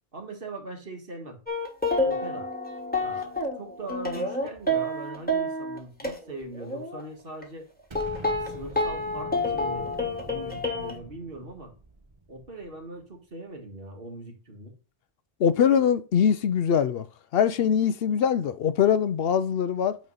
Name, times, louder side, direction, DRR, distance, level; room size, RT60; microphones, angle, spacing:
voice 1, 0.1-1.4 2.0-2.5 3.0-7.7 8.4-9.9 10.3-11.7 12.3-14.8, right 2 dB, 60° right, 1.8 m, -41 dB
sound 1, 1.5-6.2 6.5-7.0 7.4-7.5 8.0-11.0, left 1 dB, 10° left, 1.4 m, -29 dB
Explosion, 7.9-13.1, right 2 dB, 30° right, 0.9 m, -45 dB
voice 2, 15.4-17.1 17.3-20.0, left 8 dB, 70° left, 0.8 m, -22 dB
8.9 x 3.2 x 5.5 m
omnidirectional pair, 1.1 m